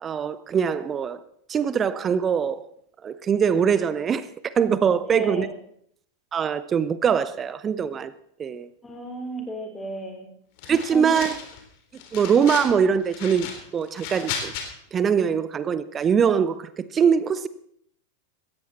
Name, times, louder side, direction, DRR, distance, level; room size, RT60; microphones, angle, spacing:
voice 1, 0.0-1.2 1.5-2.6 3.0-5.5 6.3-8.1 8.4-8.7 10.7-11.3 12.1-14.5 14.9-17.5, right 7 dB, 25° right, 16 dB, 0.7 m, -22 dB
voice 2, 5.0-5.5 8.8-10.3 10.9-11.3, right 1 dB, 10° left, 5 dB, 3.9 m, -33 dB
sound 1, 10.6-11.6 11.9-12.7 13.1-14.6, left 7 dB, 45° left, 3.3 m, -34 dB
17.5 x 14.5 x 4.2 m, 0.69 s
figure-of-eight pair, 90°, 0 cm